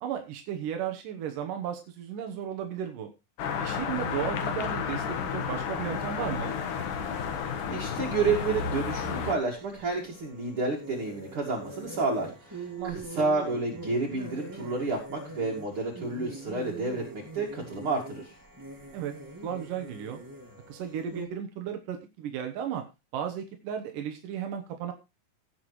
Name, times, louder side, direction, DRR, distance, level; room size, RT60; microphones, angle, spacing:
voice 1, 0.0-3.1 3.6-6.6 12.8-13.2 18.9-19.2 19.4-20.2 20.7-22.8 23.1-24.9, right 9 dB, 90° right, 5 dB, 2.9 m, -34 dB
sound 1, 3.4-9.4, left 7 dB, 75° left, 3.1 m, -32 dB
sound 2, 7.1-21.3, right 2 dB, 10° right, 1.6 m, -44 dB
voice 2, 7.7-18.3, right 3 dB, 45° right, -1 dB, 3.0 m, -30 dB
17.5 x 8.1 x 3.1 m, 0.26 s
omnidirectional pair, 3.6 m